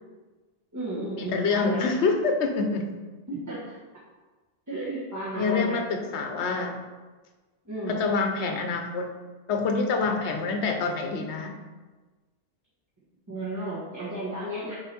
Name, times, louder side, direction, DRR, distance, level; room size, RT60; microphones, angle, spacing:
voice 1, 0.7-1.8 3.3-3.8 4.7-5.8 6.5-6.7 7.6-8.0 13.3-14.7, right 1 dB, 15° right, -8 dB, 1.2 m, -33 dB
voice 2, 1.3-2.9 5.3-6.8 7.9-9.1 9.5-11.6, left 4 dB, 80° left, 4 dB, 1.0 m, -26 dB
7.1 x 3.3 x 4.3 m, 1.3 s
omnidirectional pair, 1.1 m